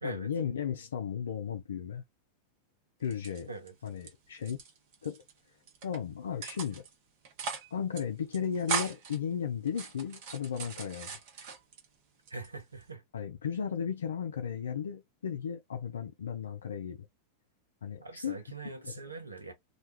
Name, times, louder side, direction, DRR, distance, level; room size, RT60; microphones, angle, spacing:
voice 1, 0.0-2.0 3.0-3.5 3.8-4.6 5.0-5.6 5.8-6.8 7.7-11.2 13.1-17.1 17.8-18.4 18.8-19.0, left 7 dB, 65° left, 0.3 m, -35 dB
sound 1, 3.0-4.1 4.4-5.3 5.7-6.0 6.4-6.9 7.2-7.7 7.9-8.0 8.3-9.2 9.7-11.9 12.3-12.9, right 6 dB, 50° right, 0.8 m, -38 dB
voice 2, 12.3-13.0 18.0-19.5, right 3 dB, 80° right, 0.7 m, -42 dB
2.2 x 2.2 x 2.8 m
figure-of-eight pair, 90°, 0 cm